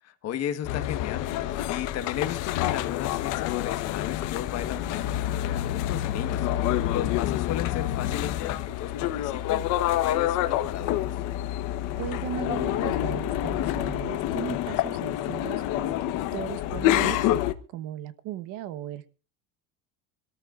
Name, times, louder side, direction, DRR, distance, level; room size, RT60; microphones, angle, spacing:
voice 1, 0.0-11.0, left 10 dB, 45° left, 1.4 m, -35 dB
sound 1, 0.6-17.5, left 13 dB, 65° left, 1.1 m, -27 dB
voice 2, 12.0-17.4 17.7-19.1, right 12 dB, 65° right, 1.2 m, -37 dB
25.5 x 13.5 x 2.5 m
cardioid pair, 160°, 34 cm